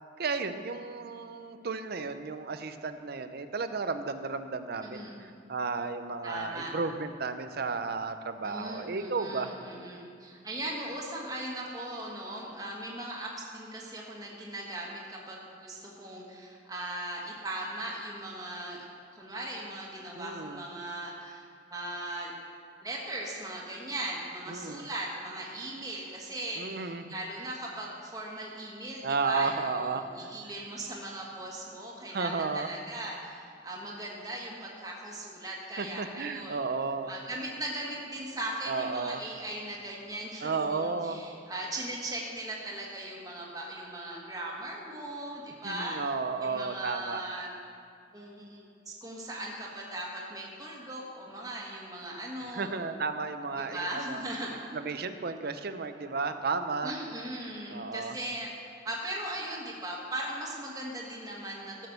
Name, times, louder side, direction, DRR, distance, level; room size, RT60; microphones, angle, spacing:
voice 1, 0.2-9.5 20.1-20.6 24.5-24.9 26.6-27.0 29.0-30.3 32.1-32.7 35.8-37.1 38.7-39.2 40.4-41.2 45.6-47.2 52.5-54.2 54.7-56.9 57.7-58.1, right 4 dB, 55° right, 10 dB, 0.7 m, -33 dB
voice 2, 4.8-5.2 6.2-6.7 8.4-18.8 19.1-22.3 22.8-36.6 37.1-46.0 46.4-47.5 48.1-52.7 53.5-54.8 56.8-58.5 58.8-61.9, right 1 dB, 20° right, -3 dB, 1.7 m, -39 dB
14.0 x 6.5 x 6.7 m, 2.4 s
head